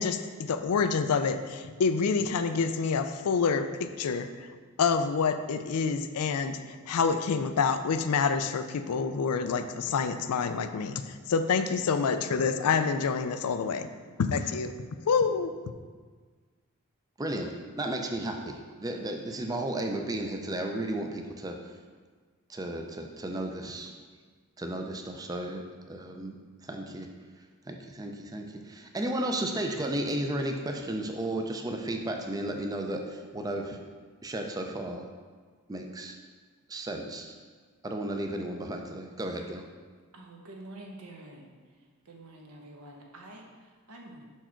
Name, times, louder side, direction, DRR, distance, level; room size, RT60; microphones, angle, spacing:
voice 1, 0.0-4.5 4.8-13.9 14.2-14.8 15.0-15.5, left 5 dB, 85° left, 9 dB, 0.4 m, -27 dB
voice 2, 17.2-21.6 22.5-23.9 24.6-27.1 27.7-33.8 34.2-35.1 35.7-36.2 36.7-37.3 37.8-39.6, right 1 dB, 15° right, 3 dB, 0.4 m, -34 dB
voice 3, 40.1-41.8 42.0-44.2, right 1 dB, 80° right, 1 dB, 1.0 m, -48 dB
5.9 x 4.5 x 4.4 m, 1.5 s
head